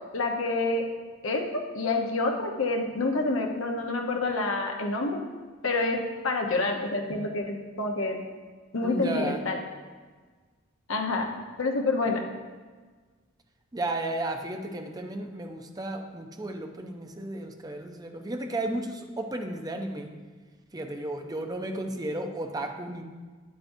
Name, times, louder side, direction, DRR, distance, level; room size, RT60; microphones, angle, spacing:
voice 1, 0.1-0.9 1.2-1.4 1.7-5.2 5.6-8.2 8.7-9.6 10.9-11.3 11.6-12.2, left 2 dB, 75° left, 2 dB, 1.0 m, -27 dB
voice 2, 8.8-9.4 13.7-20.2 20.7-23.0, right 1 dB, 20° right, 5 dB, 0.6 m, -33 dB
9.3 x 8.3 x 2.7 m, 1.5 s
head